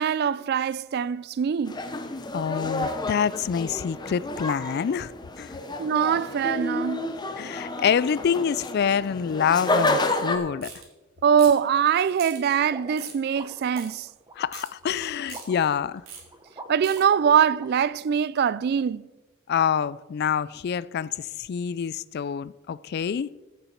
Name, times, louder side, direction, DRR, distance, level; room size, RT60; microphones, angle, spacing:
voice 1, 0.0-1.8 5.8-7.1 11.2-14.1 16.7-19.1, right 7 dB, 50° right, 0.3 m, -23 dB
sound 1, 1.7-10.4, left 2 dB, 20° left, 0.8 m, -30 dB
voice 2, 2.3-5.1 5.4-5.6 7.4-10.7 14.4-16.0 19.5-23.4, left 7 dB, 50° left, 0.3 m, -26 dB
sound 2, 10.6-10.8 11.4-11.7 12.2-12.4 13.0-13.2 13.7-13.9 14.5-14.7 15.2-15.4 16.1-16.2 16.8-17.0, right 7 dB, 85° right, 2.6 m, -40 dB
sound 3, 12.6-17.7, right 2 dB, 20° right, 1.1 m, -44 dB
15.0 x 6.9 x 4.5 m
head